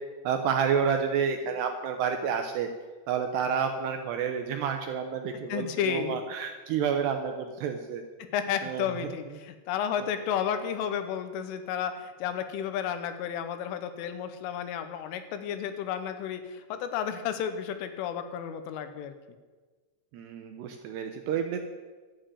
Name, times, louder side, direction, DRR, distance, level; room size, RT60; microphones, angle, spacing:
voice 1, 0.2-2.7 3.1-8.0 8.6-8.8 20.1-21.6, right 7 dB, 75° right, 5 dB, 2.6 m, -29 dB
voice 2, 5.5-6.2 8.2-19.1, left 8 dB, 80° left, 9 dB, 3.6 m, -32 dB
12.5 x 9.0 x 9.0 m, 1.4 s
omnidirectional pair, 5.7 m